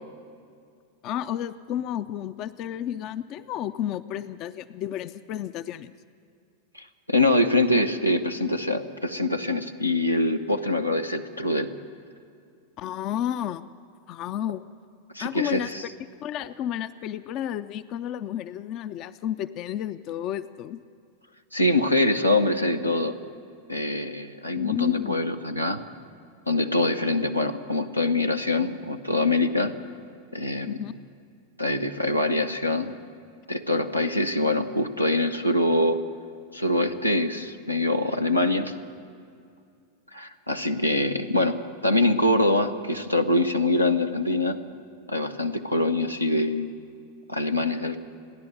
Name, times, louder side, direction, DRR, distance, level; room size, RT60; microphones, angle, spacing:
voice 1, 1.0-5.9 12.8-13.7 14.1-14.6 15.2-15.7 16.2-20.8 24.6-25.2 30.7-30.9, left 10 dB, 40° left, 14 dB, 0.5 m, -31 dB
voice 2, 6.7-11.7 15.1-15.8 21.5-23.1 23.7-25.8 26.5-29.7 30.3-30.8 31.6-32.9 33.5-36.0 36.5-38.7 40.1-41.6 41.8-44.6 45.1-46.7 47.3-48.0, left 2 dB, 90° left, 5 dB, 1.0 m, -24 dB
30.0 x 11.0 x 7.9 m, 2.4 s
figure-of-eight pair, 90°, 0 cm